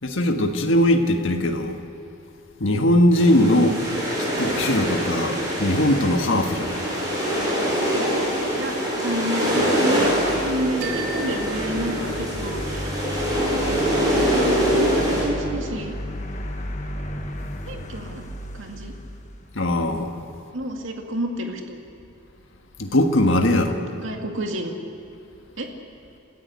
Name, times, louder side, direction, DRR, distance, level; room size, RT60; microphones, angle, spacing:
voice 1, 0.0-1.8 2.6-3.8 4.4-6.8 19.5-20.1 22.8-23.8, left 1 dB, 70° left, 4 dB, 1.6 m, -20 dB
sound 1, 3.1-15.2, equal, 20° right, 7.4 m, -24 dB
voice 2, 9.0-10.1 10.4-13.0 13.4-13.5 14.1-16.0 17.7-18.2 18.5-18.9 20.5-21.8 23.5-24.8 25.6-25.7, right 1 dB, 70° right, 2 dB, 2.3 m, -30 dB
sound 2, 9.8-20.0, left 1 dB, 35° left, 1.5 m, -34 dB
sound 3, 10.8-12.7, right 4 dB, 50° right, 4.2 m, -37 dB
28.0 x 15.0 x 8.3 m, 2.7 s
head